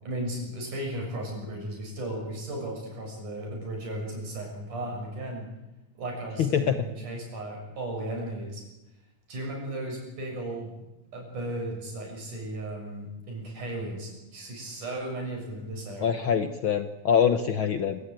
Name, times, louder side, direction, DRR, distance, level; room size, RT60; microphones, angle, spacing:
voice 1, 0.0-5.5 6.0-8.6 9.3-10.7 11.1-16.3, right 1 dB, 75° right, 0 dB, 8.8 m, -35 dB
voice 2, 6.4-6.8 16.0-18.0, left 8 dB, 70° left, 9 dB, 1.2 m, -24 dB
26.0 x 16.5 x 9.1 m, 0.99 s
omnidirectional pair, 3.6 m